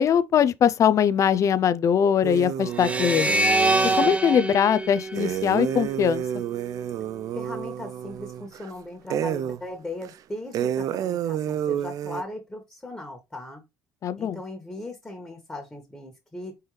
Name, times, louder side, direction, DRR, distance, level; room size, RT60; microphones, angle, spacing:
voice 1, 0.0-3.5 4.0-6.2 14.0-14.4, left 8 dB, 45° left, 0.4 m, -21 dB
sound 1, 2.2-4.2 5.1-8.7 9.1-9.6 10.0-10.1 10.5-12.2, right 10 dB, 55° right, 0.3 m, -30 dB
sound 2, 2.8-6.0, right 1 dB, 20° right, 0.7 m, -25 dB
voice 2, 7.3-13.6 14.2-16.6, left 2 dB, 15° left, 1.5 m, -38 dB
4.5 x 3.1 x 3.2 m
supercardioid pair, 75°, 7 cm